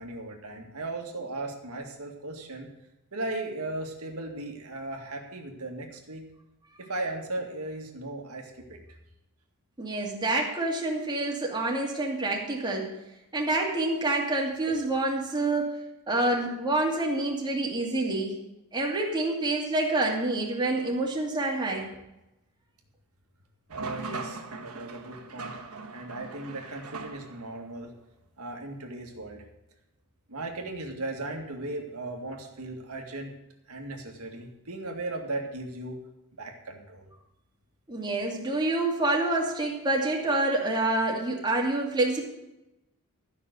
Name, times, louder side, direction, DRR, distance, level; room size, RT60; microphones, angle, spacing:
voice 1, 0.0-2.7 3.1-6.2 6.8-8.8 23.7-25.5 25.9-27.9 28.4-29.4 30.3-33.3 33.7-36.0 36.4-37.1, right 2 dB, 75° right, 2 dB, 2.0 m, -37 dB
voice 2, 9.8-12.9 13.3-15.7 16.1-18.4 18.7-21.9 37.9-42.2, right 2 dB, 20° right, -2 dB, 2.5 m, -27 dB
sound 1, 23.7-27.6, right 4 dB, 90° right, 1.5 m, -40 dB
13.0 x 6.0 x 8.0 m, 0.92 s
head